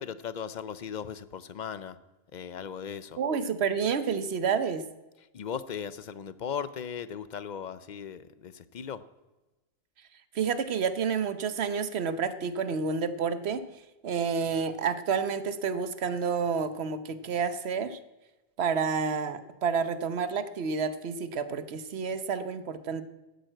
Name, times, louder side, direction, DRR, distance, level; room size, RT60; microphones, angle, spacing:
voice 1, 0.0-2.0 2.3-3.2 5.3-9.0, left 7 dB, 50° left, 15 dB, 0.6 m, -37 dB
voice 2, 3.2-4.9 10.3-13.6 14.0-18.0 18.6-23.0, right 6 dB, 65° right, 12 dB, 1.1 m, -29 dB
12.0 x 9.1 x 7.8 m, 1.1 s
omnidirectional pair, 1.2 m